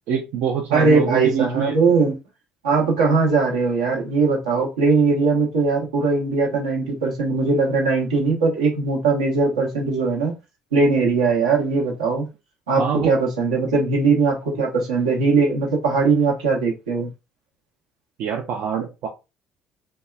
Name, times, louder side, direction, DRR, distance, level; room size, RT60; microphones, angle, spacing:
voice 1, 0.1-1.8 12.7-13.2 18.2-19.1, right 7 dB, 65° right, 0.4 m, -25 dB
voice 2, 0.7-2.2 2.6-10.3 10.7-12.3 12.7-17.1, right 4 dB, 90° right, 0.8 m, -20 dB
2.8 x 2.2 x 2.2 m
hypercardioid pair, 60°, 3 cm